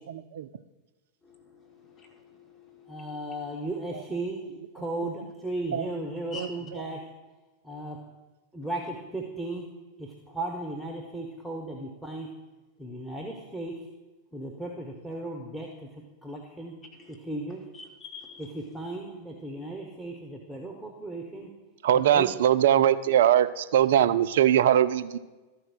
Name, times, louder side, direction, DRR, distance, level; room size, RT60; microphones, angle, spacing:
voice 1, 1.2-3.1 6.3-6.5 17.7-18.4, left 4 dB, 25° left, 1 dB, 1.7 m, -46 dB
voice 2, 2.9-4.5 4.7-7.0 7.6-8.0 8.5-9.7 10.0-12.3 12.8-13.9 14.3-15.9 16.2-16.7 17.1-17.6 18.4-21.5 21.9-22.3, right 2 dB, ahead, 1 dB, 1.0 m, -36 dB
voice 3, 6.3-6.8 21.8-25.2, right 10 dB, 60° right, 13 dB, 0.4 m, -21 dB
13.0 x 4.7 x 6.3 m, 1.2 s
figure-of-eight pair, 90°, 0 cm